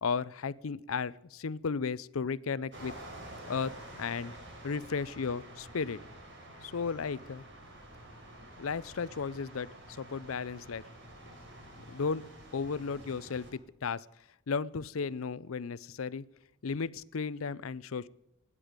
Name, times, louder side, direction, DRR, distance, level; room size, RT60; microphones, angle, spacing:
voice 1, 0.0-2.9 3.5-4.3 4.6-6.0 6.6-7.4 8.6-10.9 11.8-12.2 12.5-14.0 14.5-16.2 16.6-18.1, left 5 dB, 85° left, 18 dB, 0.6 m, -34 dB
sound 1, 2.7-13.5, right 1 dB, 60° right, 4.4 m, -49 dB
26.0 x 9.9 x 5.1 m, 0.86 s
head